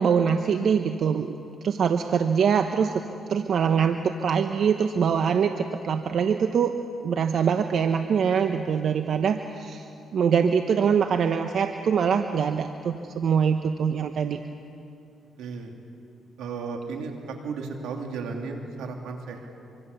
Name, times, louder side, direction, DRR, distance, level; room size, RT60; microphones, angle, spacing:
voice 1, 0.0-1.3 1.6-2.9 3.3-6.7 7.0-9.9 10.1-14.4, right 7 dB, 60° right, 7 dB, 1.0 m, -23 dB
voice 2, 15.4-15.7 16.4-17.1 17.4-19.5, right 4 dB, 85° right, 2 dB, 3.0 m, -34 dB
25.0 x 25.0 x 6.9 m, 2.7 s
cardioid pair, 90°, 0 cm